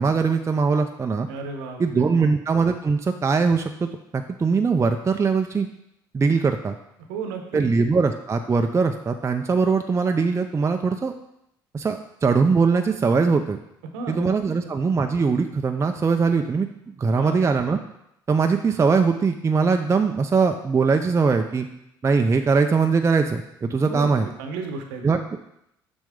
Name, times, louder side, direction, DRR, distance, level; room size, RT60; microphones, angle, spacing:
voice 1, 0.0-1.3 1.8-5.7 6.1-6.8 7.5-11.1 11.7-13.6 14.1-17.8 18.3-21.7 22.0-24.3 25.0-25.4, right 4 dB, 25° right, 5 dB, 0.5 m, -21 dB
voice 2, 1.3-2.3 7.1-7.6 13.9-14.3 17.1-17.5 23.8-25.1, right 4 dB, 85° right, 5 dB, 1.0 m, -33 dB
7.4 x 5.2 x 3.7 m, 0.80 s
hypercardioid pair, 65°, 10 cm